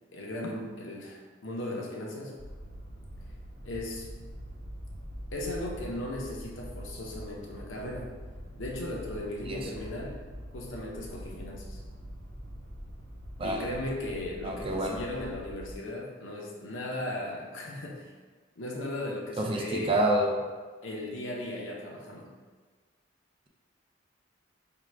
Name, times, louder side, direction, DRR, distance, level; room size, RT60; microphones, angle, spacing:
voice 1, 0.1-2.4 3.6-4.1 5.3-8.1 8.6-10.2 10.5-11.8 13.4-18.1 18.6-20.0 20.8-22.3, left 1 dB, 85° left, -2 dB, 0.8 m, -37 dB
sound 1, 2.4-15.7, equal, 50° right, 0.8 m, -44 dB
voice 2, 14.4-15.0 19.4-20.4, right 1 dB, 30° right, 1 dB, 0.5 m, -28 dB
3.7 x 2.3 x 4.5 m, 1.4 s
head